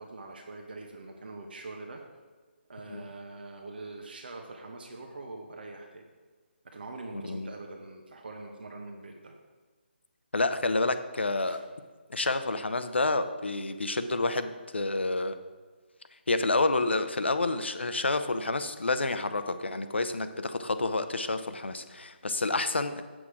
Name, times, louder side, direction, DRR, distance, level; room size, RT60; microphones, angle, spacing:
voice 1, 0.0-2.0 2.7-6.0 6.6-9.3 11.4-11.6, right 3 dB, 55° right, 2 dB, 1.0 m, -43 dB
voice 2, 7.1-7.5 10.3-11.6 12.1-15.4 16.3-23.0, left 2 dB, 70° left, 10 dB, 0.7 m, -29 dB
8.2 x 6.2 x 4.8 m, 1.4 s
figure-of-eight pair, 150°, 6 cm